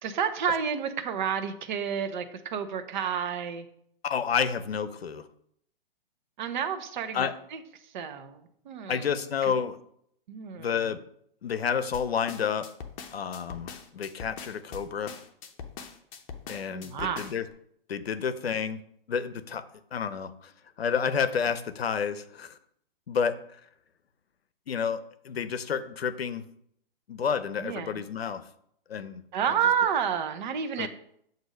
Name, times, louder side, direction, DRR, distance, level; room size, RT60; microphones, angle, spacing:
voice 1, 0.0-3.7 6.4-9.5 10.3-10.9 16.6-17.3 27.6-28.0 29.3-30.9, right 7 dB, 50° right, 9 dB, 0.8 m, -30 dB
voice 2, 4.0-5.3 7.1-7.3 8.9-9.8 10.5-11.0 11.4-12.7 13.1-15.2 16.5-17.5 17.9-18.8 19.1-19.6 19.9-20.5 20.8-22.6 23.1-23.6 24.7-26.4 27.1-28.4 28.9-29.2 30.8-30.9, left 7 dB, 85° left, 13 dB, 0.6 m, -30 dB
sound 1, 11.9-17.5, left 6 dB, 35° left, 0.8 m, -42 dB
7.7 x 2.7 x 5.1 m, 0.70 s
hypercardioid pair, 125°, 30 cm